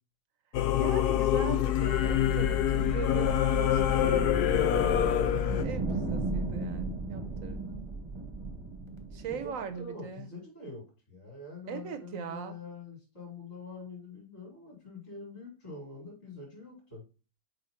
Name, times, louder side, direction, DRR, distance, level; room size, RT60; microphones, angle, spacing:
Singing / Musical instrument, 0.5-5.7, left 11 dB, 75° left, 1.2 m, -26 dB
voice 1, 0.7-7.9 9.1-10.3 11.7-12.5, right 7 dB, 65° right, 1.0 m, -40 dB
sound 1, 1.4-9.8, right 3 dB, 20° right, 0.9 m, -36 dB
voice 2, 9.3-17.0, left 3 dB, 45° left, 3.5 m, -45 dB
5.7 x 4.9 x 4.1 m
omnidirectional pair, 1.7 m